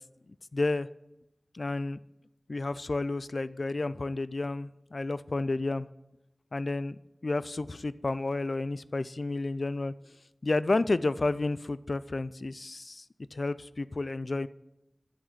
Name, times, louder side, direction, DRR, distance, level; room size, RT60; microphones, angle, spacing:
voice 1, 0.5-0.9 1.5-2.0 2.5-5.9 6.5-9.9 10.4-13.0 13.3-14.5, left 2 dB, 75° left, 17 dB, 0.4 m, -31 dB
10.5 x 7.9 x 7.4 m, 0.90 s
wide cardioid pair, 60°, 0 cm